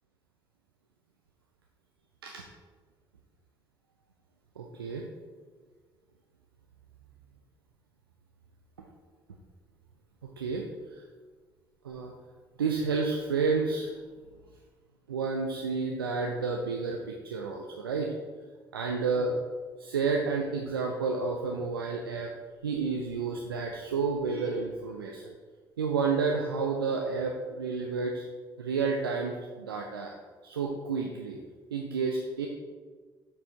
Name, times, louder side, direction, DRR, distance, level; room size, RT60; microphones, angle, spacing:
voice 1, 4.6-5.1 10.2-10.6 10.9-11.0 11.8-12.1 12.6-13.9 15.1-18.1 18.7-19.3 19.8-22.3 22.6-25.3 25.8-28.3 28.6-30.1 30.4-31.4 31.7-32.5, right 4 dB, 85° right, 1 dB, 0.5 m, -30 dB
6.7 x 5.5 x 4.0 m, 1.5 s
figure-of-eight pair, 45°, 12 cm